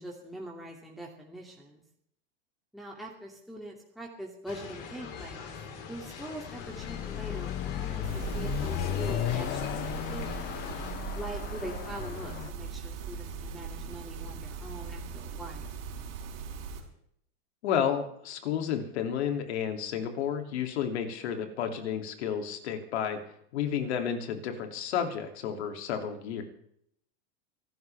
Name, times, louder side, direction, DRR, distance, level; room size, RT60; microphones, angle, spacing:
voice 1, 0.0-1.8 2.7-5.5 5.8-9.8 10.1-10.3 11.1-15.8, right 1 dB, ahead, -2 dB, 2.5 m, -43 dB
sound 1, 4.5-10.9, left 6 dB, 45° left, 4.3 m, -43 dB
Car passing by / Accelerating revving vroom, 6.5-12.5, left 14 dB, 30° left, 0.6 m, -35 dB
sound 2, 8.0-16.8, right 5 dB, 70° right, 5.3 m, -39 dB
voice 2, 17.6-23.2 23.5-26.4, left 8 dB, 75° left, 5 dB, 2.9 m, -31 dB
25.0 x 13.5 x 3.5 m, 0.70 s
supercardioid pair, 125°, 33 cm